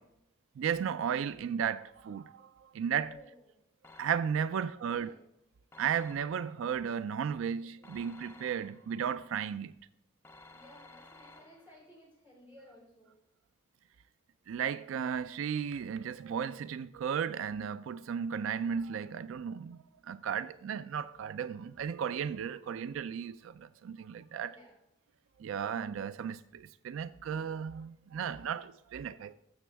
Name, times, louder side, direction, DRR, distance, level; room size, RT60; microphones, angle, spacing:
voice 1, 0.6-3.1 4.0-5.1 5.8-9.7 14.5-19.8 20.1-24.5 25.4-29.3, right 7 dB, 85° right, 0.3 m, -35 dB
voice 2, 3.0-3.7 4.5-5.2 10.5-13.2 24.4-24.8 28.5-28.6, left 1 dB, 10° right, 4.2 m, -57 dB
sound 1, 3.8-4.5 5.7-6.6 7.8-9.0 10.2-11.9, left 2 dB, 10° left, 0.6 m, -56 dB
13.5 x 6.8 x 3.4 m
head